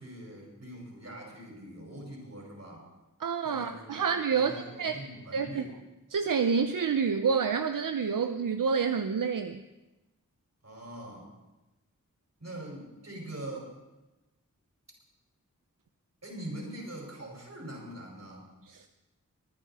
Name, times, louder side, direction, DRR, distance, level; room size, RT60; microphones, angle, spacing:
voice 1, 0.0-2.9 3.4-4.1 4.3-5.7 10.6-11.3 12.4-13.7 16.2-18.5, right 1 dB, 55° right, -1 dB, 5.2 m, -43 dB
voice 2, 3.2-5.0 5.3-5.7 6.1-9.6 18.7-18.9, right 6 dB, 85° right, 7 dB, 0.7 m, -28 dB
23.5 x 10.0 x 4.2 m, 1.0 s
wide cardioid pair, 50°, 32 cm